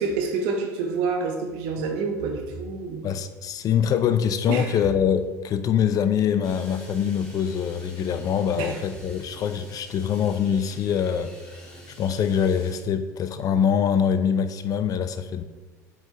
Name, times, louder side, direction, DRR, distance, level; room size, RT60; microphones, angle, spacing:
voice 1, 0.0-3.1 4.5-4.8 8.6-8.8, right 4 dB, 65° right, 3 dB, 1.0 m, -28 dB
voice 2, 3.0-15.4, left 8 dB, 45° left, 11 dB, 0.5 m, -24 dB
sound 1, 6.4-12.8, right 1 dB, 10° left, 1.6 m, -46 dB
7.3 x 4.6 x 2.9 m, 1.2 s
hypercardioid pair, 75°, 9 cm